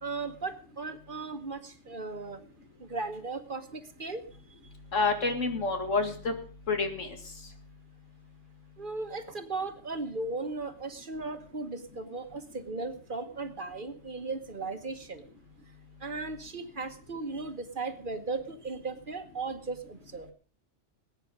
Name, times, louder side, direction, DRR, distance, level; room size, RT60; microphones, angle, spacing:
voice 1, 0.0-2.4 2.8-4.2 8.8-15.2 16.0-20.3, right 3 dB, 45° right, 8 dB, 1.3 m, -37 dB
voice 2, 4.9-6.3 6.7-7.1, left 3 dB, 90° left, 5 dB, 2.5 m, -28 dB
19.5 x 9.1 x 5.3 m, 0.42 s
omnidirectional pair, 1.3 m